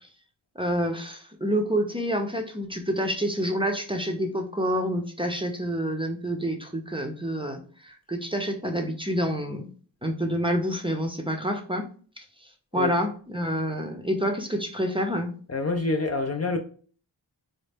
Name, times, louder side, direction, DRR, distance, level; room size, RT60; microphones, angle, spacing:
voice 1, 0.6-9.7 10.0-11.9 12.2-15.3, equal, 10° right, 0.6 m, -28 dB
voice 2, 15.5-16.6, left 3 dB, 35° left, 0.5 m, -26 dB
4.0 x 2.1 x 3.4 m
cardioid pair, 55°, 44 cm